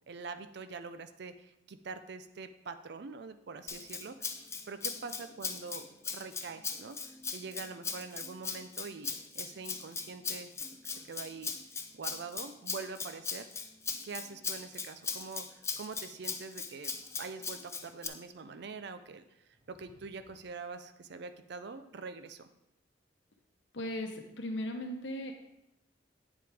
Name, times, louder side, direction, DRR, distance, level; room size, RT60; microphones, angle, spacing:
voice 1, 0.1-5.8 6.1-7.0 7.3-10.5 10.8-11.5 11.9-13.5 14.0-22.5, right 4 dB, 60° right, 10 dB, 0.5 m, -44 dB
Rattle (instrument), 3.7-18.1, left 5 dB, 15° left, 0.5 m, -39 dB
sound 1, 19.4-20.6, equal, 35° right, 2.1 m, -64 dB
voice 2, 23.7-25.3, left 1 dB, 70° left, 4 dB, 0.9 m, -37 dB
8.8 x 7.6 x 3.4 m, 0.86 s
head